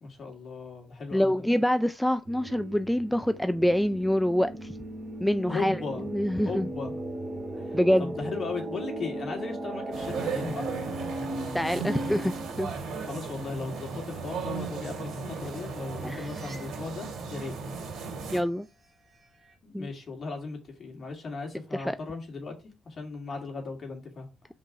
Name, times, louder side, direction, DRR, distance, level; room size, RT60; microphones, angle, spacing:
voice 1, 0.0-1.3 5.5-6.1 6.4-7.0 7.6-10.6 13.1-17.5 19.6-22.5 22.8-24.3, left 4 dB, 45° left, 2.4 m, -37 dB
voice 2, 1.1-4.7 5.2-6.7 7.7-8.1 11.5-12.7 16.0-16.3 18.3-18.7 19.7-19.9 21.7-22.0, equal, 5° left, 0.4 m, -26 dB
sound 1, 2.2-12.8 16.0-16.6 19.1-19.5, right 1 dB, 35° right, 2.0 m, -37 dB
sound 2, 9.9-18.4, right 4 dB, 75° right, 2.5 m, -36 dB
5.2 x 3.9 x 4.8 m
cardioid pair, 90°, 0 cm